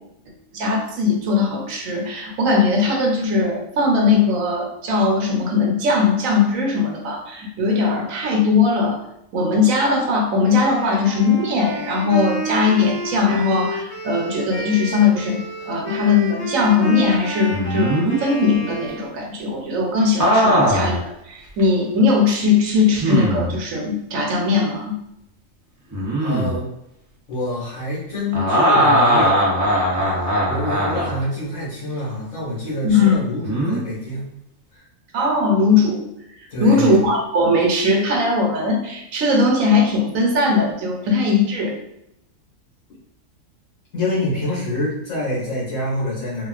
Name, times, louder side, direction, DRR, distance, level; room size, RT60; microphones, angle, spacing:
voice 1, 0.5-9.0 9.3-25.0 32.8-33.2 35.1-36.0 36.6-41.7, left 3 dB, 80° right, 0 dB, 1.1 m, -19 dB
Wind instrument woodwind instrument, 10.4-19.2, equal, 55° left, 1.6 m, -30 dB
sound 1, 17.5-18.2 20.2-21.0 21.6-21.7 23.0-23.6 25.9-26.6 28.3-31.2 33.4-33.8, equal, 30° right, 0.3 m, -19 dB
voice 2, 26.2-26.7 27.3-29.4 30.1-34.2 34.7-34.8 36.5-37.0 43.9-46.5, left 1 dB, 75° left, -8 dB, 1.4 m, -26 dB
3.5 x 2.3 x 2.4 m, 0.80 s
omnidirectional pair, 1.4 m